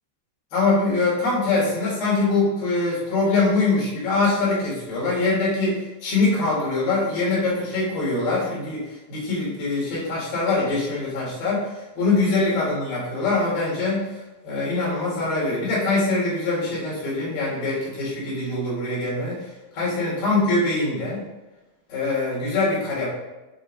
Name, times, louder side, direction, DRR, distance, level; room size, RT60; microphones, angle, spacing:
voice 1, 0.5-14.2 14.4-19.4 19.8-21.2 21.9-23.1, left 3 dB, 80° left, -6 dB, 4.7 m, -23 dB
8.8 x 6.0 x 3.6 m, 1.1 s
omnidirectional pair, 4.2 m